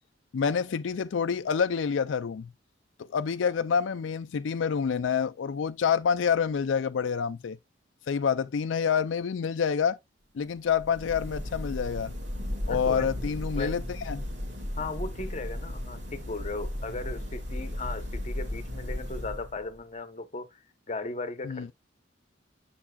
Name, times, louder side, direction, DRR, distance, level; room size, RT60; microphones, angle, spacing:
voice 1, 0.3-2.5 3.0-7.6 8.1-10.0 10.3-12.1 12.7-14.2 21.4-21.7, left 6 dB, 90° left, 0.4 m, -27 dB
sound 1, 10.6-19.8, left 1 dB, 70° right, 2.2 m, -35 dB
voice 2, 12.7-13.1 13.5-13.8 14.8-21.7, left 3 dB, 40° left, 0.8 m, -37 dB
7.2 x 7.1 x 2.3 m
head